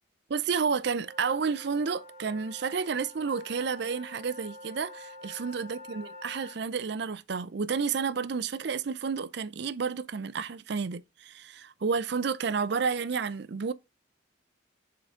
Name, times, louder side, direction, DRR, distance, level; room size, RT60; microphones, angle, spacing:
voice 1, 0.3-13.7, right 5 dB, 55° right, 0.4 m, -31 dB
sound 1, 1.0-6.6, left 1 dB, 25° right, 2.2 m, -47 dB
7.5 x 3.9 x 3.6 m
head